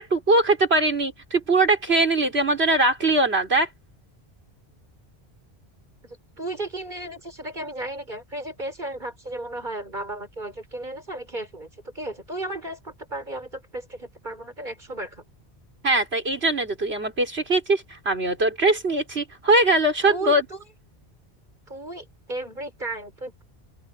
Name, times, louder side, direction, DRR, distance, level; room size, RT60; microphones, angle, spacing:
voice 1, 0.0-3.7 15.8-20.4, right 2 dB, 80° right, 4.5 m, -21 dB
voice 2, 6.1-15.2 20.1-20.6 21.7-23.4, right 2 dB, 50° right, 5.4 m, -34 dB
open air
omnidirectional pair, 1.1 m